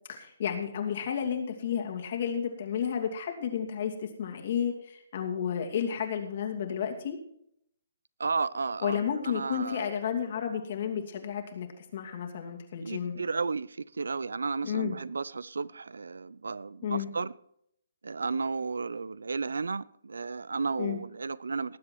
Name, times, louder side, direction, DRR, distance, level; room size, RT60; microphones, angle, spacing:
voice 1, 0.1-7.2 8.8-13.2 14.6-15.0 16.8-17.1 20.8-21.0, left 8 dB, 50° left, 2.6 m, -32 dB
voice 2, 8.2-9.9 12.8-17.3 18.0-21.8, right 4 dB, 80° right, 0.5 m, -33 dB
19.0 x 7.7 x 4.6 m
hypercardioid pair, 145°, 0 cm